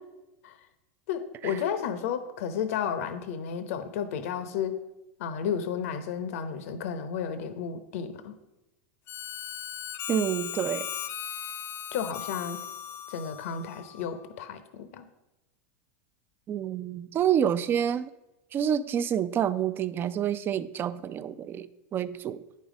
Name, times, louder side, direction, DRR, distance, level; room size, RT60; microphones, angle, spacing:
voice 1, 1.1-4.8 5.2-8.3 11.9-12.6 13.1-15.0, left 7 dB, 75° left, 10 dB, 0.8 m, -32 dB
Harmonica, 9.1-14.2, left 10 dB, 35° left, 0.4 m, -38 dB
voice 2, 10.1-10.9 16.5-18.1 18.5-22.4, right 9 dB, 30° right, 15 dB, 0.4 m, -28 dB
9.4 x 5.5 x 5.0 m, 0.98 s
supercardioid pair, 130°, 8 cm